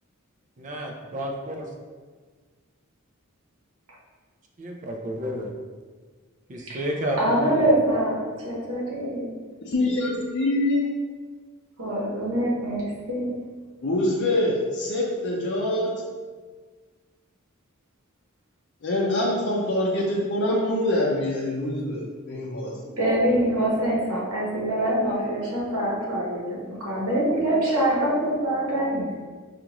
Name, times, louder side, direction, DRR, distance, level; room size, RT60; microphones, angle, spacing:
voice 1, 0.6-1.7 4.6-5.5 6.5-7.7, equal, 35° right, 2 dB, 0.5 m, -31 dB
voice 2, 7.2-9.3 11.8-13.4 23.0-29.2, right 1 dB, 70° right, -4 dB, 1.0 m, -24 dB
voice 3, 9.6-10.9 13.8-16.0 18.8-22.8, left 1 dB, 55° left, -4 dB, 0.5 m, -25 dB
4.9 x 2.4 x 2.9 m, 1.5 s
head